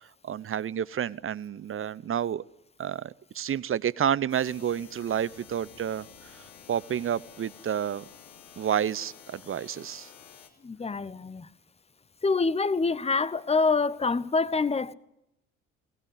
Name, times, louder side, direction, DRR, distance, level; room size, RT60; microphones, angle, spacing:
voice 1, 0.2-2.4 2.8-6.1 6.7-8.0 8.6-10.1, right 9 dB, 30° right, 0.8 m, -30 dB
sound 1, 4.3-10.5, left 8 dB, 75° left, 3.3 m, -51 dB
voice 2, 10.6-11.5 12.2-14.9, left 4 dB, 15° left, 1.0 m, -26 dB
22.5 x 19.0 x 9.8 m
figure-of-eight pair, 50°, 40 cm